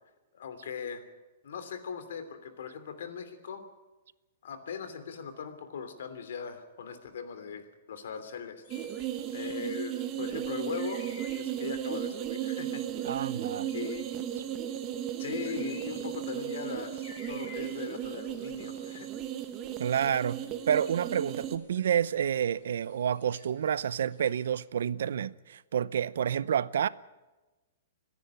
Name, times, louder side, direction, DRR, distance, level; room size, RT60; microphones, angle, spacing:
voice 1, 0.3-1.0 1.4-3.6 4.4-8.6 9.3-11.0 11.3-12.8 13.3-14.2 15.2-19.1, left 6 dB, 70° left, 3.0 m, -40 dB
sound 1, 8.6-24.7, left 4 dB, 50° left, 7.3 m, -56 dB
sound 2, 8.7-21.6, right 10 dB, 25° right, 1.0 m, -35 dB
voice 2, 13.0-13.7 19.8-26.9, right 9 dB, 70° right, 0.6 m, -29 dB
25.5 x 10.5 x 9.6 m
hypercardioid pair, 170°, 0 cm